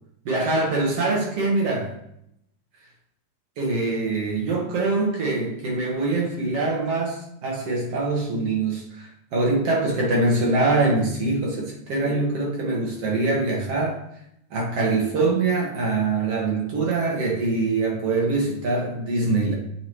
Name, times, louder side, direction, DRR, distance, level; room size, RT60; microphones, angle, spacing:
voice 1, 0.3-1.9 3.6-14.0 14.5-19.5, right 3 dB, 55° right, -2 dB, 2.2 m, -24 dB
7.7 x 7.2 x 3.1 m, 0.77 s
omnidirectional pair, 3.7 m